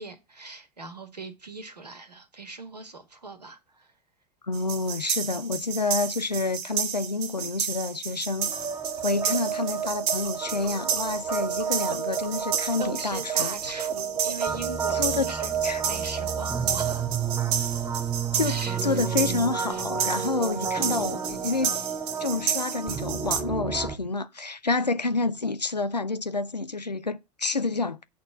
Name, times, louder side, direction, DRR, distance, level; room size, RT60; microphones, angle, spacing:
voice 1, 0.0-3.9 12.8-15.5 15.8-17.1 18.4-19.0 19.7-19.8, right 3 dB, 80° right, 1.6 m, -39 dB
voice 2, 4.5-8.5 9.0-13.6 14.9-15.3 15.6-15.8 18.3-21.7 22.2-28.0, left 3 dB, 90° left, 0.6 m, -28 dB
sound 1, 4.5-23.4, right 7 dB, 45° right, 1.7 m, -32 dB
sound 2, 8.4-24.0, right 7 dB, 15° right, 1.4 m, -31 dB
Gurgling / Liquid, 9.0-15.8, left 4 dB, 70° left, 1.9 m, -51 dB
8.5 x 4.3 x 7.1 m
figure-of-eight pair, 85°, 21 cm